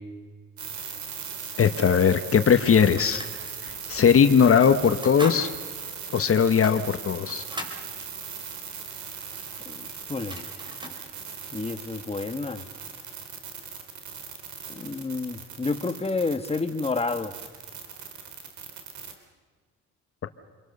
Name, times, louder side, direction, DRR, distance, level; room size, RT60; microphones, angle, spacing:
sound 1, 0.6-19.2, right 6 dB, 70° right, 3.9 m, -39 dB
voice 1, 1.6-3.2 3.6-5.5 6.1-7.4, left 7 dB, 45° left, 9 dB, 1.3 m, -19 dB
sound 2, 2.5-3.6 3.9-4.2 4.7-5.4 5.8-5.9 6.5-7.8 9.8-9.9 10.1-11.0, equal, 15° right, 4.6 m, -39 dB
voice 2, 9.6-10.4 11.5-12.7 14.7-17.3, left 3 dB, 20° left, 8 dB, 1.5 m, -30 dB
29.0 x 22.5 x 6.8 m, 1.5 s
cardioid pair, 90°, 30 cm